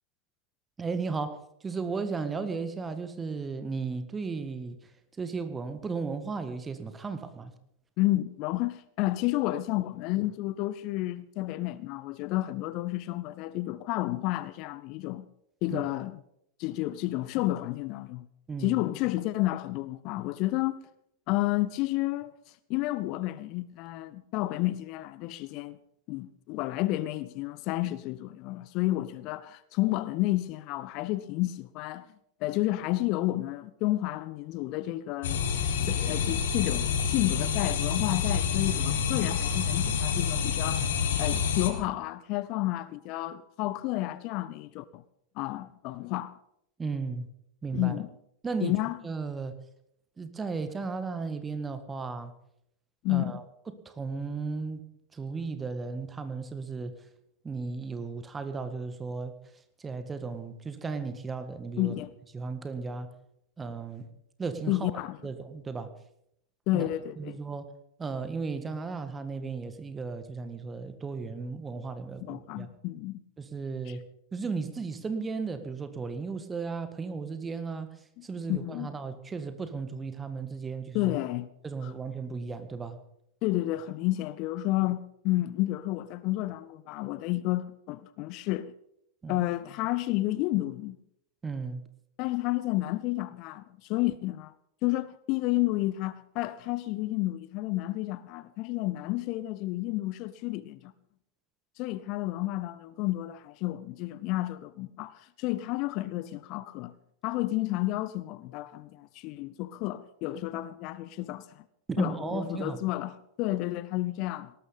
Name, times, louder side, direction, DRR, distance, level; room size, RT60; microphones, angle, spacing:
voice 1, 0.8-1.4 1.6-4.8 5.2-7.5 15.7-15.9 18.5-18.8 46.8-47.3 47.6-48.0 48.4-48.7 49.0-49.5 50.2-52.3 53.1-54.8 55.1-56.9 57.4-59.3 59.8-61.9 62.3-63.1 63.6-64.1 64.4-64.9 65.2-65.9 66.7-66.9 67.2-67.7 68.0-72.7 73.4-74.0 74.3-77.9 78.2-81.1 81.6-83.0 89.2-89.5 91.4-91.8 111.9-112.8, right 4 dB, 15° right, 1.7 m, -35 dB
voice 2, 8.0-15.2 15.6-16.2 16.6-18.3 18.6-20.9 21.3-22.3 22.7-25.8 26.1-32.1 32.4-35.4 35.9-40.9 41.2-45.0 45.4-46.3 47.7-48.1 48.6-49.0 53.0-53.4 61.8-62.1 64.7-65.2 66.7-67.4 72.2-73.2 73.9-74.0 78.2-78.9 80.9-81.5 81.8-81.9 83.4-88.7 89.3-91.0 92.2-94.5 94.8-100.9 101.8-106.9 107.2-111.6 112.0-114.5, left 17 dB, 40° left, 0.6 m, -31 dB
sound 1, 35.2-41.7, left 7 dB, 60° left, 2.3 m, -28 dB
18.5 x 13.0 x 5.4 m
figure-of-eight pair, 90°, 0 cm